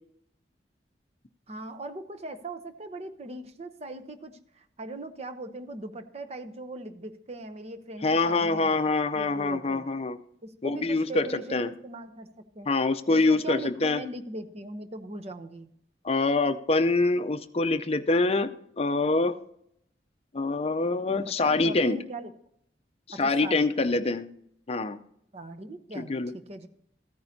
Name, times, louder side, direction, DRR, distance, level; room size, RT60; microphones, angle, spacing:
voice 1, 1.5-8.7 9.1-9.9 10.4-12.3 12.5-12.7 13.1-15.7 21.1-22.3 23.1-24.0 25.3-26.7, right 2 dB, 35° right, 7 dB, 0.8 m, -40 dB
voice 2, 8.0-10.2 10.6-11.3 11.5-11.7 12.7-14.0 16.0-18.5 18.8-19.3 20.3-22.0 23.2-24.3 24.7-25.0 26.0-26.3, left 3 dB, 35° left, 9 dB, 0.6 m, -25 dB
14.0 x 9.4 x 2.8 m, 0.71 s
head